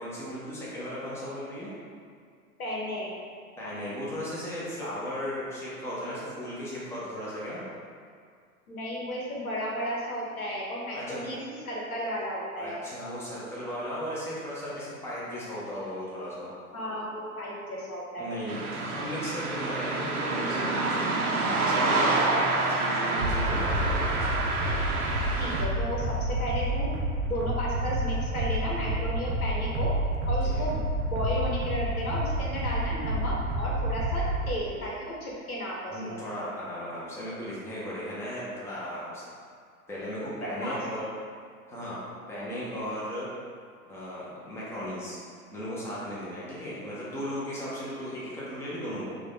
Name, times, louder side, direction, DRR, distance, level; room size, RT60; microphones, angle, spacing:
voice 1, 0.0-1.7 3.6-7.6 10.9-11.3 12.6-16.5 18.2-24.3 30.4-30.7 35.8-39.3 39.9-41.0 41.7-42.0 42.3-43.3 43.9-45.2 45.5-49.2, equal, 5° left, -8 dB, 0.8 m, -36 dB
voice 2, 2.6-3.1 8.7-11.4 11.6-12.8 16.7-18.3 25.4-26.9 27.2-29.9 30.3-36.2 40.4-40.8, equal, 70° left, -4 dB, 1.2 m, -33 dB
sound 1, 18.5-25.7, right 2 dB, 75° right, 0.7 m, -28 dB
sound 2, 23.2-34.4, right 1 dB, 25° right, 0.4 m, -29 dB
4.9 x 2.5 x 3.4 m, 2.1 s
figure-of-eight pair, 95°, 44 cm